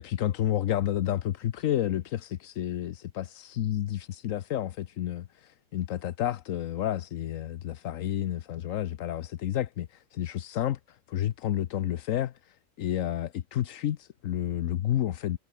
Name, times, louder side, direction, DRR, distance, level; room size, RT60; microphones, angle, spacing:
voice 1, 0.0-15.4, left 11 dB, 85° left, 1.1 m, -30 dB
omnidirectional pair, 1.3 m